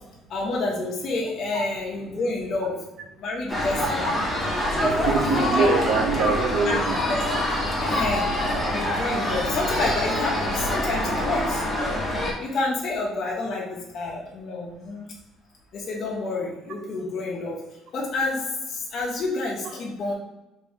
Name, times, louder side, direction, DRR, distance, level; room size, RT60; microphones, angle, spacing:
voice 1, 0.3-2.8 3.2-4.1 4.5-4.6 5.2-5.7 6.6-6.8 7.1-7.2 7.8-8.3 8.7-11.6 12.4-15.0 15.7-17.6 17.9-20.1, left 3 dB, 50° left, -3 dB, 0.7 m, -29 dB
sound 1, 3.5-12.3, left 1 dB, 5° left, 1.1 m, -25 dB
voice 2, 4.8-6.9, right 4 dB, 75° right, 6 dB, 0.5 m, -24 dB
3.5 x 2.6 x 3.5 m, 1.0 s
cardioid pair, 120°, 0 cm